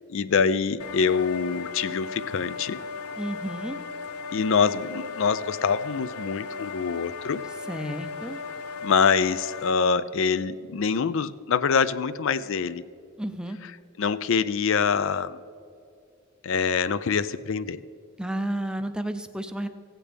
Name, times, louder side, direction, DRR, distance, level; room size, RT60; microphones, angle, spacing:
voice 1, 0.1-2.8 4.3-7.4 8.8-12.8 14.0-15.4 16.4-17.8, left 5 dB, 60° left, 15 dB, 0.4 m, -25 dB
sound 1, 0.8-9.7, left 5 dB, 80° left, 0.8 m, -36 dB
voice 2, 3.2-3.8 7.7-8.4 13.2-13.6 18.2-19.7, right 1 dB, 5° right, 8 dB, 0.5 m, -31 dB
16.0 x 9.0 x 3.4 m, 2.5 s
head